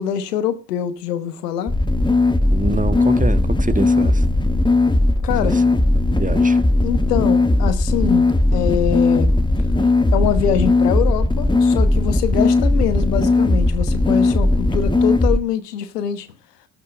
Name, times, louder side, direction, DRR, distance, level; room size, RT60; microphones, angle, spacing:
voice 1, 0.0-1.7 5.2-5.6 6.8-9.3 10.1-16.3, left 9 dB, 90° left, 1.2 m, -23 dB
sound 1, 1.7-15.4, left 2 dB, 10° left, 1.6 m, -17 dB
voice 2, 2.5-4.2 5.4-5.6 6.1-6.6, right 2 dB, 15° right, 1.5 m, -25 dB
13.5 x 6.0 x 7.9 m
hypercardioid pair, 50°, 46 cm